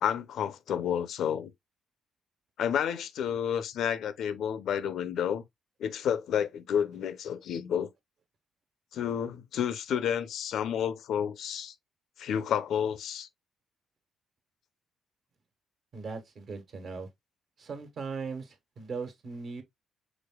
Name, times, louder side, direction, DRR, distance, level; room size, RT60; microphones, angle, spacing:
voice 1, 0.0-1.5 2.6-5.4 5.8-7.9 8.9-11.7 12.2-13.3, left 8 dB, 75° left, 0.6 m, -30 dB
voice 2, 15.9-17.1 17.6-19.6, right 4 dB, 55° right, 1.3 m, -39 dB
5.1 x 3.8 x 2.2 m
cardioid pair, 90°, 0 cm